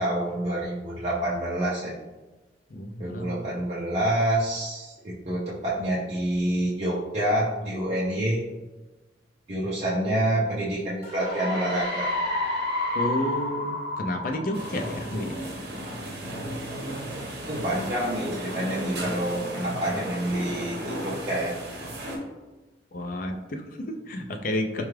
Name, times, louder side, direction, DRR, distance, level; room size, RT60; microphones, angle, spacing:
voice 1, 0.0-1.9 3.0-8.5 9.5-12.1 17.5-21.6, right 1 dB, 35° right, -7 dB, 0.5 m, -27 dB
voice 2, 2.7-3.4 12.9-15.4 22.9-24.8, left 1 dB, 50° left, 4 dB, 0.4 m, -31 dB
sound 1, 11.0-15.6, left 2 dB, 35° left, 1.2 m, -30 dB
sound 2, 14.5-22.2, right 1 dB, 60° right, 0.8 m, -34 dB
4.7 x 2.3 x 3.2 m, 1.2 s
head